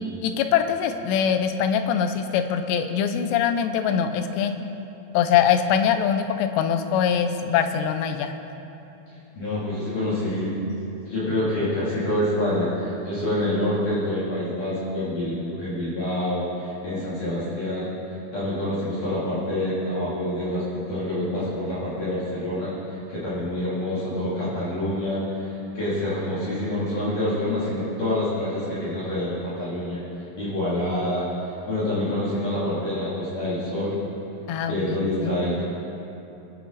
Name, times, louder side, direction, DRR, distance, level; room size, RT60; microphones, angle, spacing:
voice 1, 0.2-4.5 5.1-8.3 34.5-35.3, left 8 dB, 80° left, 7 dB, 2.9 m, -23 dB
voice 2, 9.3-10.5 11.1-17.9 18.3-22.7 23.1-30.0 30.4-31.3 31.7-34.0 34.7-35.6, left 1 dB, 50° left, -11 dB, 4.2 m, -27 dB
23.0 x 9.3 x 4.1 m, 2.9 s
omnidirectional pair, 5.0 m